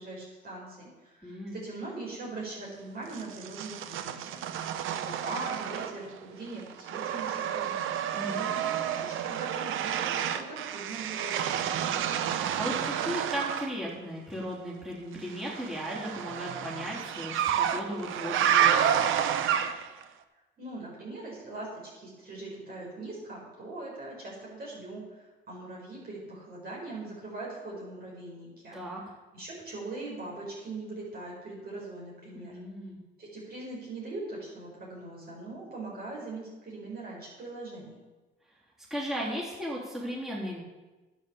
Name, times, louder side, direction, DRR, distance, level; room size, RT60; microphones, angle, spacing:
voice 1, 0.0-4.7 4.9-12.0 20.6-28.8 29.3-32.5 33.2-37.9, right 2 dB, 50° right, -5 dB, 4.9 m, -41 dB
voice 2, 1.2-1.5 8.1-8.5 12.3-19.0 28.7-29.0 32.3-33.0 38.9-40.6, equal, ahead, -6 dB, 3.4 m, -36 dB
sound 1, 3.1-6.2 6.5-13.7 15.3-20.0, right 9 dB, 85° right, 0.8 m, -30 dB
10.5 x 8.6 x 7.0 m, 1.2 s
cardioid pair, 90°, 20 cm